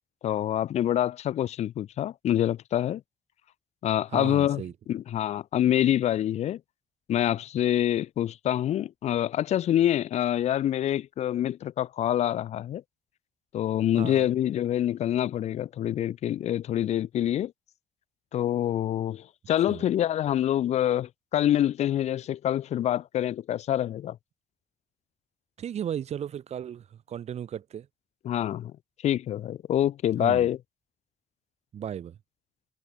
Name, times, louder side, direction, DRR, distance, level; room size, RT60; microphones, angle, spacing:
voice 1, 0.2-3.0 3.8-4.6 4.9-6.6 7.1-12.8 13.5-17.5 18.3-24.2 28.2-28.7 29.0-30.6, left 11 dB, 80° left, 0.8 m, -26 dB
voice 2, 4.1-4.7 14.0-14.3 19.7-19.8 25.6-27.9 30.2-30.5 31.7-32.2, right 9 dB, 75° right, 3.9 m, -35 dB
cardioid pair, 65°, 11 cm